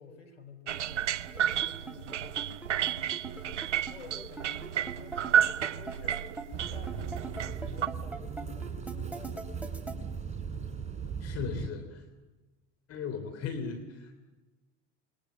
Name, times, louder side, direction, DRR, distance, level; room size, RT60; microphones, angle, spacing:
voice 1, 0.0-2.4 2.7-6.2 6.5-10.0, left 5 dB, 90° left, 3 dB, 3.8 m, -51 dB
sound 1, 0.7-7.9, right 10 dB, 80° right, 0.8 m, -31 dB
sound 2, 1.3-9.9, right 3 dB, 5° right, 3.7 m, -40 dB
sound 3, 6.5-11.7, right 6 dB, 20° right, 3.9 m, -38 dB
voice 2, 11.2-12.0 12.9-14.2, left 6 dB, 45° left, 6 dB, 3.2 m, -37 dB
28.0 x 22.0 x 7.9 m, 1.2 s
hypercardioid pair, 75°, 35 cm